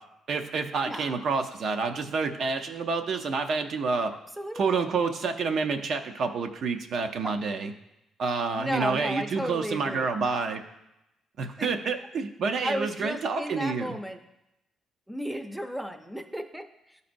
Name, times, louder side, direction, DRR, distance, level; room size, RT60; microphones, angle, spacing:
voice 1, 0.3-4.1 4.5-7.7 8.2-10.6 11.4-13.9, right 4 dB, 65° right, 6 dB, 0.6 m, -28 dB
voice 2, 0.8-1.2 4.4-4.8 7.2-7.3 8.6-10.1 11.6-11.7 12.6-14.2 15.1-17.0, equal, ahead, 6 dB, 0.6 m, -34 dB
11.5 x 4.1 x 2.6 m, 0.91 s
cardioid pair, 90°, 0 cm